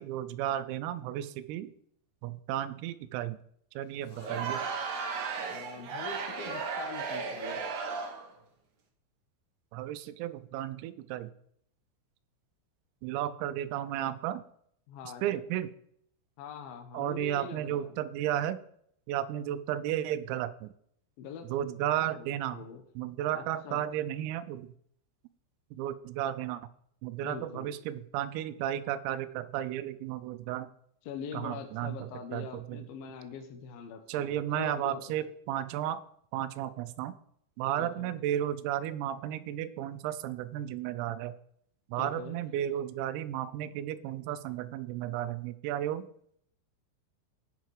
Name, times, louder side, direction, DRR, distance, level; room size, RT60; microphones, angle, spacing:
voice 1, 0.0-1.7 2.2-3.4 3.8-4.6 9.7-11.3 13.0-14.4 15.2-15.7 16.9-18.6 19.1-20.7 21.5-22.6 23.0-24.7 25.7-26.6 27.0-30.7 31.3-32.9 34.1-36.0 36.3-37.2 37.6-41.3 41.9-46.1, right 11 dB, 90° right, 11 dB, 3.4 m, -33 dB
voice 2, 4.1-4.4 5.5-7.6 14.9-15.4 16.4-17.9 21.2-21.7 22.1-22.8 23.3-23.8 27.2-27.7 31.1-35.2 37.8-38.1 42.0-42.4, left 6 dB, 85° left, 6 dB, 2.1 m, -43 dB
Crowd, 4.1-8.3, right 5 dB, 65° right, 1.8 m, -35 dB
16.5 x 5.9 x 4.8 m, 0.68 s
omnidirectional pair, 6.0 m